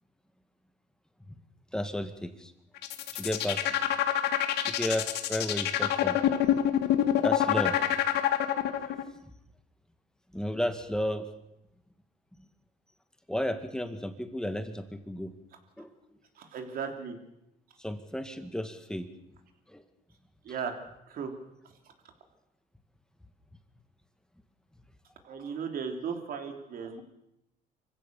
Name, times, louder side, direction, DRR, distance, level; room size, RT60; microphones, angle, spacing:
voice 1, 1.7-2.5 3.1-3.6 4.8-6.2 7.2-7.9 8.7-8.8 10.3-11.3 13.3-15.3 15.8-15.9 17.8-19.1 19.7-19.8, left 1 dB, 5° left, 8 dB, 1.9 m, -33 dB
sound 1, 2.8-9.0, left 11 dB, 75° left, 1.7 m, -26 dB
voice 2, 16.4-17.2 20.4-20.8 21.1-21.3 25.2-27.0, right 6 dB, 60° right, 5 dB, 3.4 m, -36 dB
25.0 x 16.0 x 7.0 m, 0.85 s
cardioid pair, 110°, 17 cm